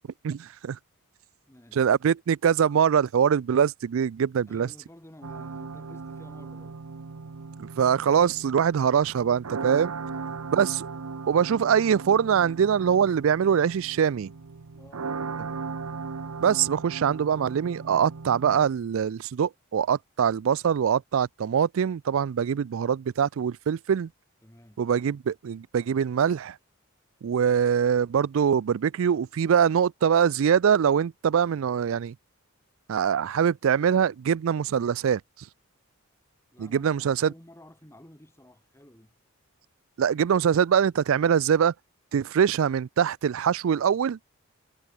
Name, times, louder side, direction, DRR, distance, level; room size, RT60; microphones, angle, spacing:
voice 1, 0.2-0.8 1.7-4.7 7.6-9.9 10.5-10.9 11.3-14.3 16.4-24.1 24.8-26.6 27.2-32.1 32.9-35.2 36.6-37.3 40.0-41.7 42.1-44.2, right 7 dB, 65° right, 0.3 m, -23 dB
voice 2, 1.5-1.9 4.5-6.8 10.1-10.4 14.7-15.2 24.4-24.8 36.5-39.1, left 1 dB, 10° left, 1.8 m, -52 dB
sound 1, 5.2-18.7, right 4 dB, 85° right, 0.8 m, -38 dB
head